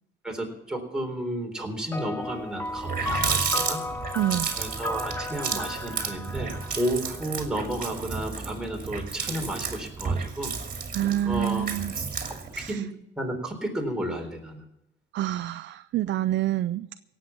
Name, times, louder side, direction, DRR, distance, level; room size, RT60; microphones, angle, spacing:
voice 1, 0.2-3.8 4.6-10.5 11.2-11.7 12.6-14.6, right 1 dB, 5° right, 1 dB, 3.8 m, -32 dB
sound 1, 1.9-7.7, left 2 dB, 10° left, 0.7 m, -35 dB
Water tap faucet, 2.3-2.4 2.6-12.7, right 5 dB, 45° right, 2.5 m, -32 dB
voice 2, 4.1-4.5 10.9-11.9 12.5-12.8 15.1-16.9, right 12 dB, 65° right, 12 dB, 0.5 m, -27 dB
17.5 x 7.8 x 7.2 m, 0.84 s
cardioid pair, 90°, 20 cm